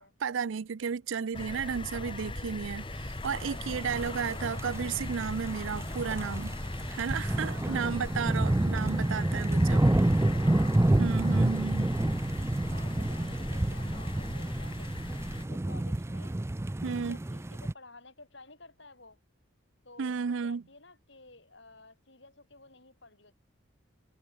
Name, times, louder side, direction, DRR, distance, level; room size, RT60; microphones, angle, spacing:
voice 1, 0.0-6.5 6.9-9.9 11.0-11.9 16.8-17.2 20.0-20.6, right 6 dB, 70° right, 0.5 m, -33 dB
sound 1, 1.3-15.5, left 2 dB, 25° left, 1.0 m, -39 dB
voice 2, 2.1-2.4 7.6-9.2 10.1-10.7 12.7-16.4 16.9-19.2 19.8-23.4, left 3 dB, 60° left, 5.7 m, -54 dB
sound 2, 3.4-17.7, right 1 dB, 15° right, 0.4 m, -29 dB
head